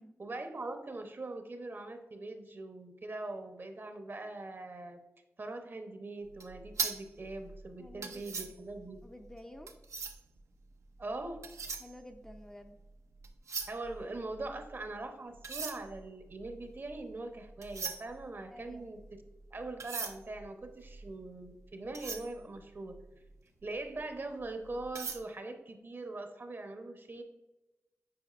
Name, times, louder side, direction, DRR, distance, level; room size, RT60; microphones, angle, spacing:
voice 1, 0.2-5.0 5.4-9.0 11.0-11.4 13.7-19.0 19.5-23.0 23.6-27.2, right 2 dB, 45° right, 6 dB, 0.8 m, -42 dB
sound 1, 6.3-10.4 11.2-12.8 13.1-14.9 15.3-23.3 23.8-24.0 24.4-25.2, right 5 dB, 80° right, 0.6 m, -41 dB
voice 2, 7.8-8.5 9.0-9.7 11.8-12.8 18.5-18.9, left 1 dB, 10° left, 4 dB, 0.5 m, -51 dB
8.5 x 4.9 x 2.5 m, 1.0 s
wide cardioid pair, 80°, 5 cm